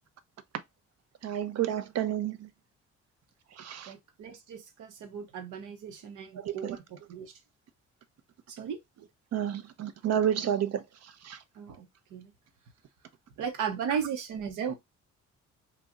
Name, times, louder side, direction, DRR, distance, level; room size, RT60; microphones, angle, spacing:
voice 1, 1.2-2.5 3.6-3.9 6.4-6.8 9.3-10.8 11.2-11.4 13.9-14.0, right 10 dB, 55° right, 0.6 m, -30 dB
voice 2, 3.9-7.3 8.5-8.8 11.6-11.9 12.1-12.3 13.4-14.7, right 7 dB, 80° right, 1.0 m, -36 dB
3.0 x 2.4 x 3.7 m
cardioid pair, 90°, 30 cm